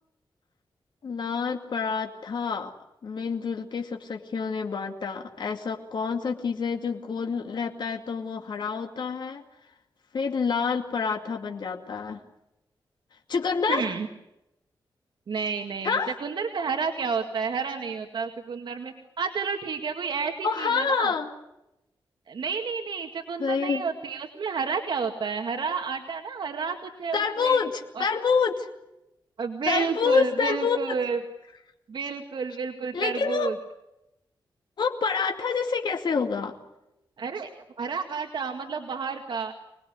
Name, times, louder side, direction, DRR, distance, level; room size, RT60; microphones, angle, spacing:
voice 1, 1.0-2.7 3.0-9.4 10.1-12.2 13.3-13.9 15.8-16.2 20.4-21.3 23.4-23.8 27.1-28.7 29.7-30.8 32.9-33.5 34.8-36.6, left 5 dB, 65° left, 4 dB, 2.4 m, -27 dB
voice 2, 13.7-14.1 15.3-21.1 22.3-27.6 28.0-28.1 29.4-31.2 31.9-33.6 37.2-37.5 37.8-39.5, right 5 dB, 70° right, 4 dB, 2.1 m, -30 dB
26.0 x 20.0 x 9.6 m, 0.91 s
wide cardioid pair, 110°, 8 cm